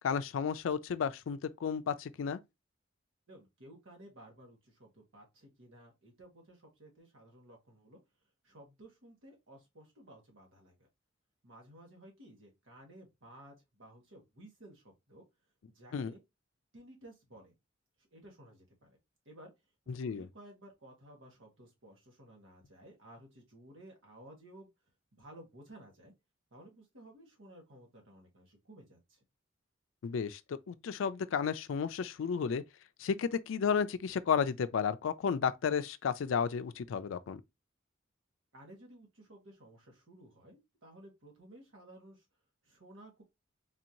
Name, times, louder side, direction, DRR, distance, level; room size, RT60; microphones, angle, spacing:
voice 1, 0.0-2.4 15.9-16.1 19.9-20.3 30.0-32.6 33.0-37.4, left 6 dB, 80° left, 0.4 m, -33 dB
voice 2, 3.3-8.0 8.4-10.9 11.4-15.2 15.7-16.2 16.7-17.5 18.0-19.0 19.2-19.5 19.8-24.7 25.1-26.1 26.5-29.2 38.5-42.2 42.6-43.2, right 1 dB, 80° right, 1.5 m, -55 dB
4.1 x 2.6 x 2.9 m
head